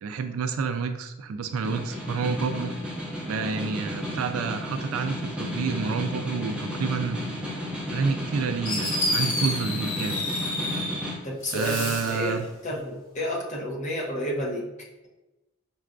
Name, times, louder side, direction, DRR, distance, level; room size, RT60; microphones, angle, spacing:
voice 1, 0.0-2.7 3.2-7.2 7.9-10.2 11.5-12.5, right 5 dB, 85° right, 8 dB, 0.3 m, -29 dB
Snare drum, 1.4-11.2, left 1 dB, 5° right, 0.7 m, -33 dB
Fireworks, 8.2-8.3 8.6-11.1 11.4-12.3, left 1 dB, 70° left, 1.0 m, -29 dB
voice 2, 11.2-14.7, equal, 35° left, -2 dB, 0.8 m, -31 dB
5.3 x 2.3 x 2.4 m, 1.0 s
head